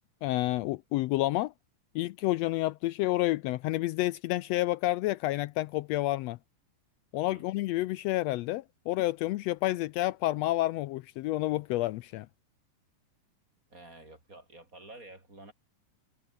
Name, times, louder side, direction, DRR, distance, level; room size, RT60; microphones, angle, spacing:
voice 1, 0.2-1.5 1.9-6.4 7.1-12.3, left 17 dB, 90° left, 1.5 m, -29 dB
voice 2, 13.7-15.5, right 2 dB, 25° right, 6.3 m, -50 dB
omnidirectional pair, 3.5 m